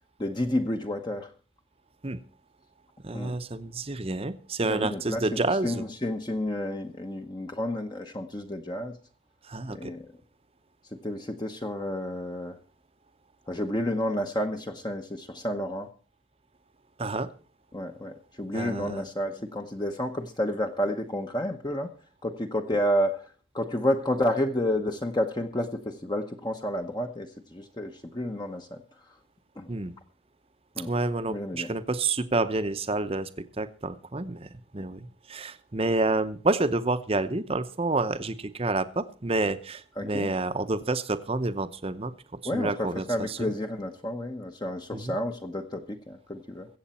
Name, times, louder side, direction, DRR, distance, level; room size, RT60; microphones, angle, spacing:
voice 1, 0.2-1.3 3.1-3.3 4.6-9.0 9.7-10.1 10.9-12.6 13.5-15.9 17.7-21.9 22.2-28.8 29.6-29.7 30.8-30.9 31.3-31.7 40.0-40.3 42.4-46.7, left 1 dB, 20° left, 4 dB, 0.9 m, -30 dB
voice 2, 3.0-5.8 9.5-9.9 17.0-17.3 18.5-19.0 29.7-29.9 30.9-33.3 33.6-42.1 42.5-43.5 44.9-45.2, right 2 dB, 30° right, 11 dB, 0.8 m, -29 dB
23.0 x 8.0 x 4.2 m, 0.36 s
head